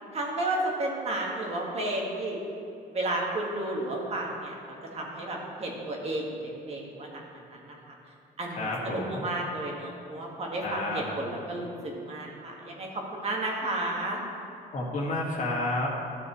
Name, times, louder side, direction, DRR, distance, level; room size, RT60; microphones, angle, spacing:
voice 1, 0.1-2.4 2.9-7.8 8.4-14.2, right 1 dB, 40° right, -2 dB, 1.7 m, -32 dB
voice 2, 8.6-9.2 10.6-11.0 14.7-16.0, left 2 dB, 50° left, -3 dB, 2.0 m, -30 dB
13.0 x 6.9 x 3.1 m, 2.6 s
cardioid pair, 110°, 17 cm